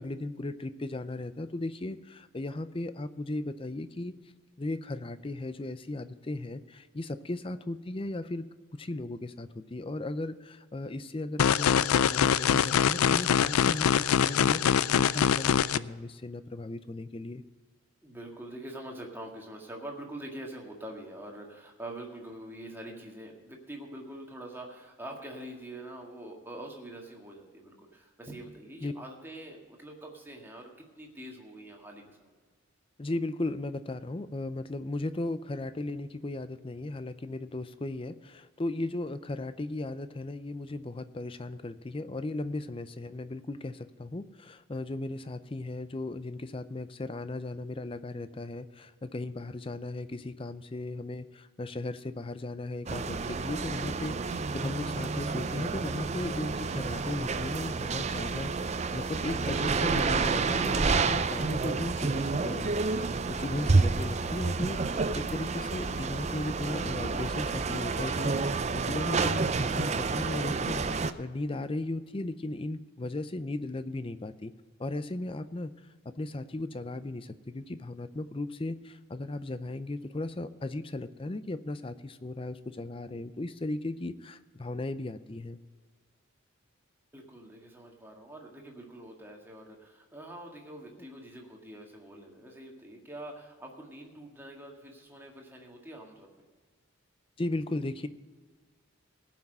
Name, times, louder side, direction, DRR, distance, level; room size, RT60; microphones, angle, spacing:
voice 1, 0.0-4.1 4.6-8.5 8.8-17.4 28.8-28.9 33.0-74.5 74.8-75.7 76.0-85.6 91.0-91.1 97.4-98.1, left 2 dB, 25° left, 12 dB, 0.5 m, -36 dB
sound 1, 11.4-15.8, left 8 dB, 85° left, 0.4 m, -24 dB
voice 2, 18.0-32.4 87.1-96.3, right 1 dB, 10° right, 0 dB, 1.8 m, -45 dB
sound 2, 52.9-71.1, right 4 dB, 30° right, 0.4 m, -29 dB
18.0 x 6.0 x 6.6 m, 1.4 s
head